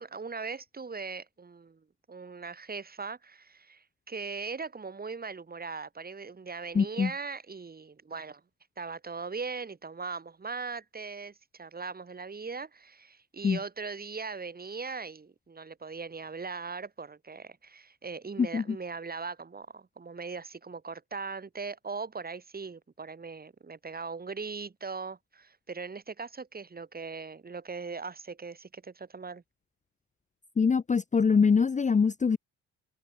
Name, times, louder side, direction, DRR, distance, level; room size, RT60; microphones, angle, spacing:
voice 1, 0.0-1.8 2.1-8.4 8.8-29.4, right 4 dB, 30° right, 4.7 m, -39 dB
voice 2, 6.7-7.1 13.4-13.6 18.4-18.6 30.6-32.4, left 5 dB, 25° left, 0.8 m, -24 dB
cardioid pair, 90°, 30 cm